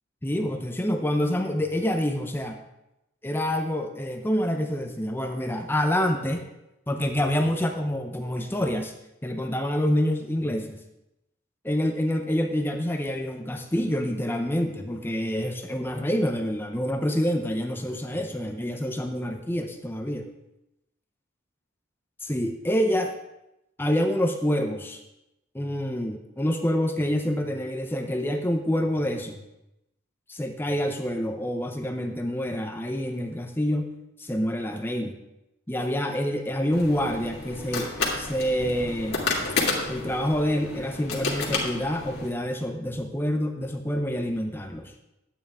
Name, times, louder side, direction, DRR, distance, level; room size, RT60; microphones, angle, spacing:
voice 1, 0.2-2.6 3.2-6.5 6.9-8.9 9.2-10.8 11.6-20.3 22.2-23.1 23.8-25.0 25.5-29.4 30.3-33.9 34.2-35.2 35.7-37.9 38.2-39.2 39.9-44.9, equal, 10° left, 4 dB, 0.6 m, -27 dB
sound 1, 36.7-42.3, left 3 dB, 60° left, 2.2 m, -31 dB
11.0 x 9.0 x 3.5 m, 0.89 s
head